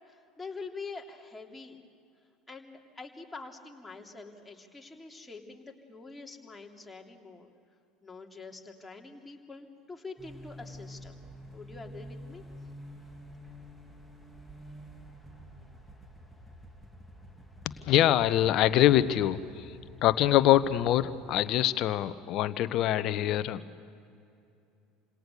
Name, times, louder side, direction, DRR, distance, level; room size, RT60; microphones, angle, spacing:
voice 1, 0.1-1.8 2.5-7.5 8.0-11.2 11.5-12.4, left 4 dB, 10° left, 1 dB, 3.1 m, -45 dB
sound 1, 10.2-21.5, equal, 5° right, 3.0 m, -49 dB
voice 2, 17.8-19.7 20.0-23.6, left 13 dB, 50° left, 14 dB, 1.0 m, -24 dB
29.0 x 26.5 x 6.8 m, 2.5 s
figure-of-eight pair, 65°, 0 cm